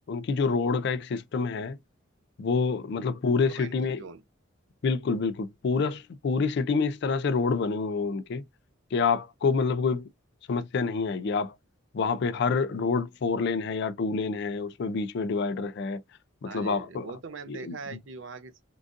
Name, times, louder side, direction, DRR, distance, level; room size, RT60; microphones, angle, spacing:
voice 1, 0.1-1.8 2.4-4.0 4.8-8.4 8.9-10.1 10.5-11.5 11.9-16.0 16.4-17.1 17.5-17.8, left 4 dB, 55° left, 0.4 m, -27 dB
voice 2, 3.5-4.2 16.4-18.6, right 4 dB, 65° right, 0.6 m, -42 dB
3.8 x 2.4 x 2.5 m
head